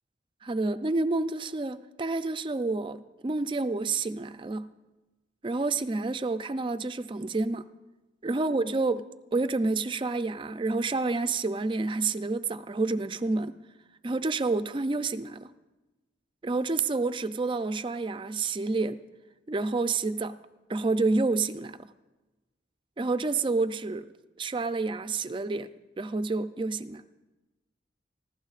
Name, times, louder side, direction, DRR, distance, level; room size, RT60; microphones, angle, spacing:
voice 1, 0.4-4.7 5.4-7.7 8.2-9.0 9.3-13.6 14.0-15.5 16.4-19.0 19.5-20.4 20.7-21.8 23.0-24.1 24.4-25.7 26.0-27.0, right 3 dB, 25° right, 0.4 m, -29 dB
24.5 x 15.5 x 2.4 m
head